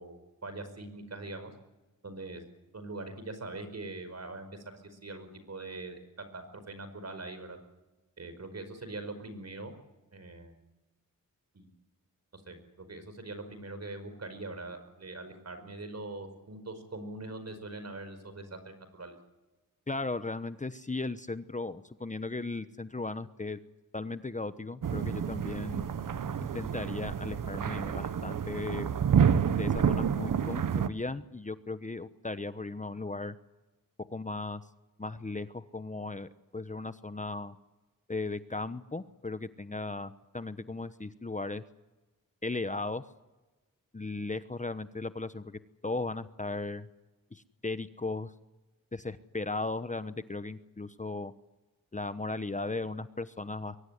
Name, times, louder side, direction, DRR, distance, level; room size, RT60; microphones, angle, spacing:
voice 1, 0.0-1.5 2.0-2.4 2.7-7.6 8.2-9.7 10.1-10.6 11.5-11.7 12.3-19.2, right 2 dB, 50° right, 9 dB, 5.1 m, -42 dB
voice 2, 19.9-23.6 23.9-25.9 26.5-28.9 29.6-33.4 34.1-34.6 35.0-37.6 38.1-41.6 42.4-43.1 43.9-46.9 47.3-48.3 48.9-51.3 51.9-53.8, left 3 dB, 20° left, 12 dB, 1.1 m, -36 dB
sound 1, 24.8-30.9, right 7 dB, 70° right, 1.2 m, -29 dB
23.5 x 17.5 x 9.5 m, 1.1 s
cardioid pair, 60°, 33 cm